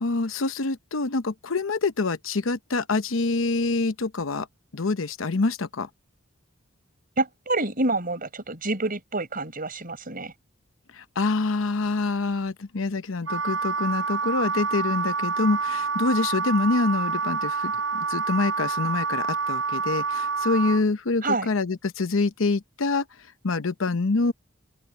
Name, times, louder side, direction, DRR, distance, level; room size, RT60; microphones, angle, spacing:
voice 1, 0.0-4.5 4.7-5.9 10.9-23.0 23.4-24.3, left 3 dB, 90° left, 0.9 m, -26 dB
voice 2, 7.2-10.3 21.2-21.5, right 2 dB, 45° right, 5.0 m, -27 dB
Wind instrument woodwind instrument, 13.2-20.8, right 4 dB, 75° right, 5.0 m, -27 dB
open air
head